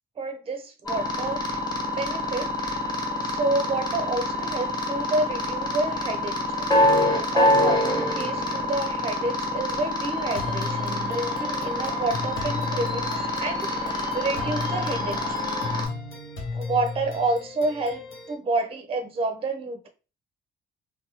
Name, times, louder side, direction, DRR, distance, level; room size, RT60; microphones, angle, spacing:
voice 1, 0.2-1.6 1.9-2.8 3.2-6.8 7.3-13.9 14.1-15.4 16.5-19.9, right 2 dB, 30° right, 0.5 m, -29 dB
sound 1, 0.9-15.9, left 1 dB, 20° left, 1.1 m, -26 dB
sound 2, 10.3-18.3, left 4 dB, 80° left, 0.8 m, -35 dB
2.7 x 2.2 x 2.8 m
cardioid pair, 90°, 20 cm